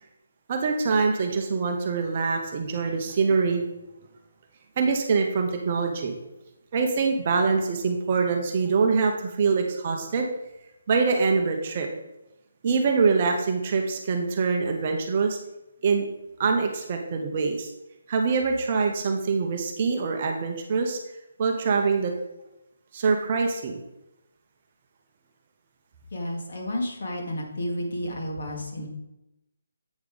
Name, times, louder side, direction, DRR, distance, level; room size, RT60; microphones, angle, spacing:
voice 1, 0.5-3.6 4.8-6.1 6.7-10.3 10.9-11.9 12.6-15.4 15.8-16.1 16.4-17.7 18.1-21.0 21.4-22.1 22.9-23.8, right 4 dB, 25° right, 3 dB, 0.8 m, -24 dB
voice 2, 26.1-28.9, left 1 dB, 45° left, -1 dB, 2.1 m, -31 dB
8.2 x 5.7 x 5.0 m, 0.91 s
hypercardioid pair, 175°, 0 cm